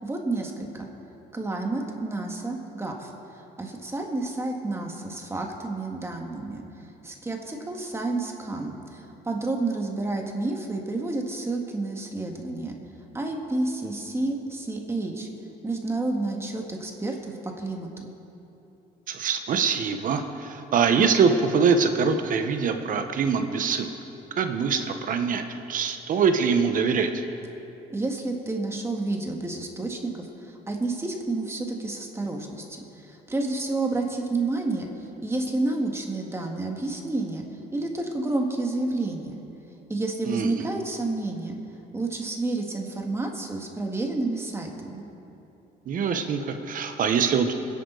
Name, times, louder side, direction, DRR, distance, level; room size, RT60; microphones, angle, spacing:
voice 1, 0.0-0.9 1.3-3.1 3.6-6.6 7.0-12.8 13.1-15.3 15.6-18.1 27.9-34.9 35.2-37.4 37.7-39.3 39.9-41.6 41.9-45.1, right 2 dB, 15° right, 1 dB, 2.0 m, -30 dB
voice 2, 19.1-23.9 24.4-27.1 40.3-40.7 45.9-47.5, right 6 dB, 55° right, 7 dB, 1.2 m, -24 dB
25.0 x 11.0 x 4.1 m, 3.0 s
cardioid pair, 110°, 17 cm